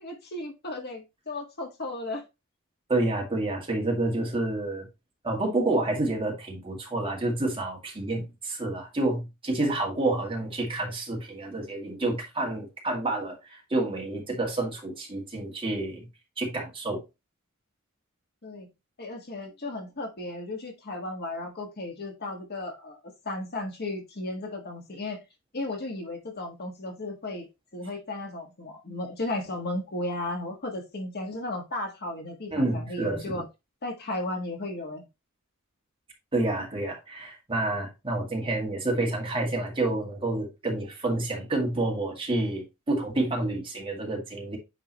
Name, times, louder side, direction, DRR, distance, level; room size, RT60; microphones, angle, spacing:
voice 1, 0.0-2.2 18.4-18.7 19.0-23.0 23.2-25.2 25.5-27.5 27.7-33.4 33.8-35.0, left 2 dB, 50° left, 1.6 m, -35 dB
voice 2, 2.9-4.9 5.2-16.1 16.4-17.0 32.5-33.4 36.3-44.6, right 2 dB, 25° right, 2.1 m, -29 dB
9.2 x 3.9 x 3.0 m
head